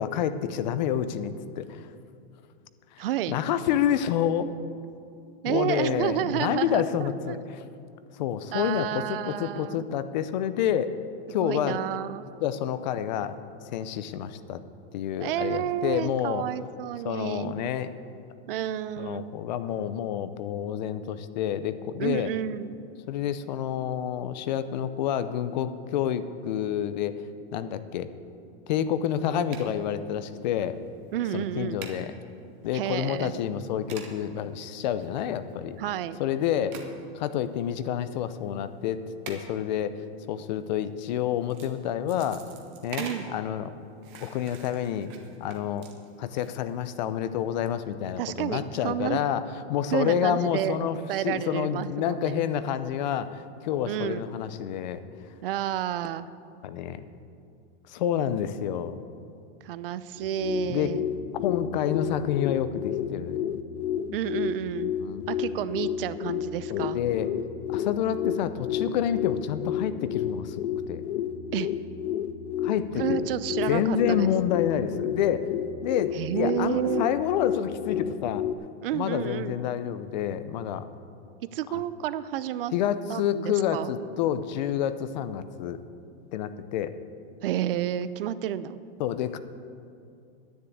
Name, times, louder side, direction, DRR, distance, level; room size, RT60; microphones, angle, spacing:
voice 1, 0.0-1.9 2.9-4.5 5.4-7.6 8.2-10.9 11.3-11.8 12.4-13.4 13.7-14.6 14.9-16.5 17.0-18.1 19.0-22.3 23.1-27.2 27.5-28.1 28.7-30.8 31.3-32.1 32.6-35.8 36.2-36.8 37.1-39.0 39.3-39.9 40.3-42.4 42.8-43.8 44.2-45.1 45.4-45.9 46.2-49.4 49.7-55.0 56.6-57.1 57.9-59.0 60.7-60.9 61.4-63.4 65.0-65.3 66.7-67.3 67.7-70.6 70.9-71.0 72.6-73.3 73.7-75.5 75.8-78.4 78.9-80.9 81.7-81.8 82.7-85.8 86.3-86.9 89.0-89.4, left 9 dB, 40° left, 12 dB, 0.6 m, -28 dB
voice 2, 3.0-3.4 5.4-7.4 8.5-9.8 11.4-12.3 15.2-17.6 18.5-19.3 22.0-22.8 31.1-31.8 32.7-33.3 35.8-36.2 43.0-43.2 48.2-49.2 49.9-50.8 51.1-52.4 53.9-54.2 55.4-56.3 59.6-61.0 64.1-64.9 65.3-67.0 71.5-71.7 73.0-74.3 76.1-77.1 78.8-79.6 81.5-82.7 83.1-83.9 87.4-88.8, right 11 dB, 55° right, 14 dB, 0.6 m, -30 dB
sound 1, 29.5-29.8 30.5-30.9 31.2-31.3 31.8-32.0 32.6-32.7 33.3-33.4 33.9-34.2 34.8-35.5 36.7-37.0 37.9-38.0 39.3-39.4 40.3-40.6 41.3-41.7 42.1-43.3 44.0-46.9 47.5-47.7, right 6 dB, 10° right, 0.3 m, -43 dB
sound 2, 60.2-78.5, left 9 dB, 85° left, 0.7 m, -31 dB
10.5 x 9.4 x 8.7 m, 2.5 s
supercardioid pair, 175°, 33 cm